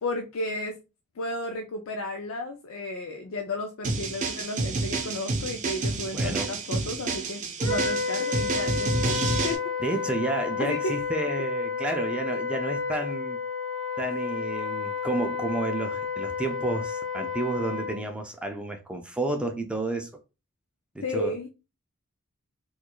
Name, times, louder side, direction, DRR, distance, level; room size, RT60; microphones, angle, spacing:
voice 1, 0.0-0.8 1.2-9.7 10.6-11.0 21.0-21.5, left 2 dB, 70° left, 0.4 m, -33 dB
sound 1, 3.8-9.6, right 3 dB, 35° right, 0.6 m, -29 dB
voice 2, 6.1-6.5 9.8-13.4 14.0-20.1 21.0-21.4, right 2 dB, 5° right, 0.3 m, -31 dB
Wind instrument woodwind instrument, 7.6-18.0, left 5 dB, 20° left, 1.4 m, -31 dB
4.4 x 2.3 x 2.2 m
head